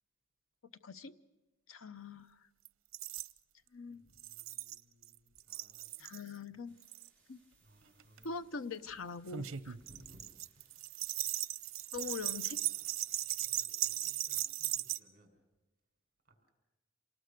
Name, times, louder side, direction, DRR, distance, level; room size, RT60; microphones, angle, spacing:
voice 1, 0.8-1.1 1.7-2.4 3.7-4.0 6.0-6.8 7.3-7.4 8.2-9.8 11.9-12.6, left 4 dB, 85° left, 11 dB, 0.7 m, -43 dB
sound 1, 2.6-2.7 2.9-3.3 4.2-5.1 5.4-6.2 6.8-7.1 8.0-8.2 9.3-15.0, right 13 dB, 85° right, 0.7 m, -38 dB
voice 2, 3.9-6.2 6.7-8.5 9.8-10.2 10.5-11.1 11.7-15.3 16.2-16.5, equal, 45° right, 3 dB, 5.5 m, -64 dB
sound 2, 6.6-13.5, right 3 dB, 5° left, 6.1 m, -70 dB
27.0 x 19.0 x 6.7 m, 1.1 s
head